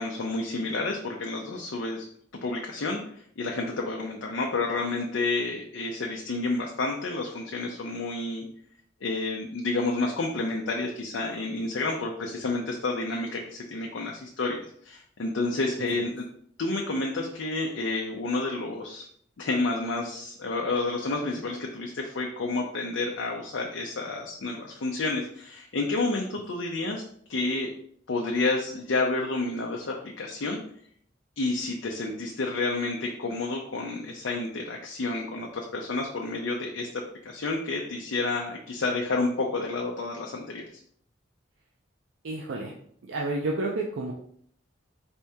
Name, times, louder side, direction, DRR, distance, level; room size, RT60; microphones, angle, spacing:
voice 1, 0.0-2.0 2.4-8.4 9.0-16.3 16.6-19.1 19.4-27.0 27.3-27.7 28.1-30.6 31.4-40.7, left 3 dB, 85° left, 0 dB, 0.5 m, -30 dB
voice 2, 42.2-42.7 43.0-44.1, right 2 dB, 90° right, 0 dB, 0.5 m, -30 dB
4.4 x 2.7 x 3.4 m, 0.64 s
head